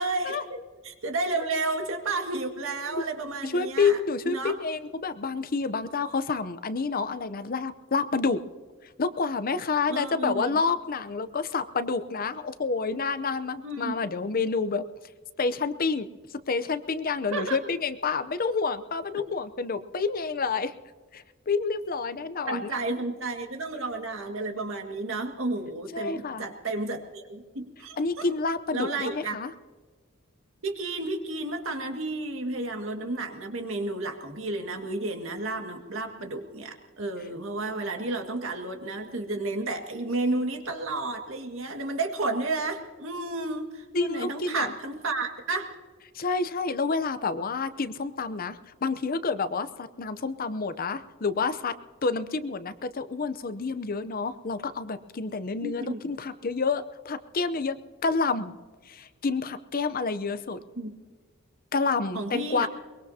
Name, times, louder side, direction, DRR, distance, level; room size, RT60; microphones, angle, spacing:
voice 1, 0.0-4.0 4.2-4.6 9.9-10.6 13.6-13.9 17.3-17.6 22.5-28.3 28.7-29.4 30.6-45.7 55.6-56.0 60.8-60.9 62.1-62.7, right 2 dB, 70° right, 4 dB, 1.9 m, -32 dB
voice 2, 3.4-8.4 9.0-14.8 15.4-16.1 16.5-20.7 21.1-22.7 25.9-26.4 28.0-29.5 43.9-44.7 46.1-51.7 52.0-57.8 58.0-58.5 58.9-60.6 61.7-62.7, left 4 dB, 45° left, 12 dB, 0.7 m, -29 dB
23.0 x 21.5 x 2.8 m, 1.4 s
head